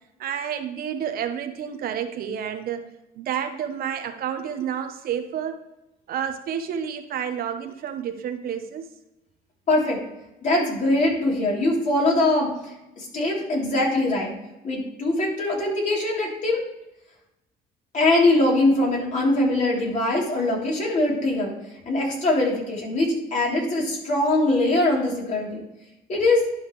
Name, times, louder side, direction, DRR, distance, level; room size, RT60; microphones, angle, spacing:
voice 1, 0.2-2.8 3.2-5.6 6.1-8.8, right 8 dB, 60° right, 8 dB, 0.9 m, -30 dB
voice 2, 9.7-10.0 10.4-12.5 13.0-14.3 14.6-16.6 17.9-21.5 21.8-25.6 26.1-26.4, left 2 dB, 45° left, -2 dB, 3.3 m, -22 dB
11.5 x 5.6 x 3.1 m, 0.93 s
cardioid pair, 110°, 17 cm